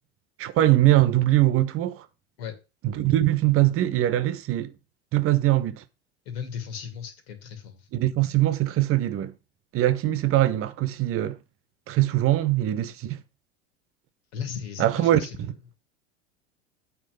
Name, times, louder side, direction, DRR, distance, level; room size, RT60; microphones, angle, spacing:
voice 1, 0.4-2.0 2.8-4.7 5.1-5.8 7.9-9.3 9.7-11.4 11.9-13.2 14.8-15.2, right 14 dB, 45° right, 1.0 m, -22 dB
voice 2, 6.2-7.9 14.3-15.6, left 7 dB, 70° left, 2.7 m, -36 dB
8.6 x 4.5 x 6.6 m
hypercardioid pair, 85°, 32 cm